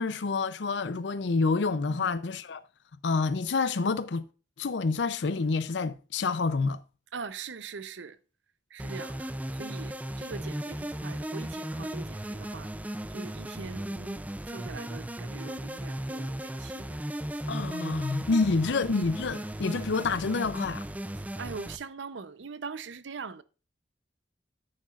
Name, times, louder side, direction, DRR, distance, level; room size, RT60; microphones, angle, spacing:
voice 1, 0.0-2.6 3.0-4.2 4.6-6.8 17.5-20.8, left 4 dB, 70° left, 0.6 m, -28 dB
voice 2, 7.1-8.2 8.7-12.7 13.1-17.0 18.3-18.7 21.2-23.4, right 5 dB, 85° right, 0.7 m, -42 dB
sound 1, 8.8-21.8, right 1 dB, 10° right, 0.4 m, -36 dB
9.8 x 8.7 x 2.4 m
head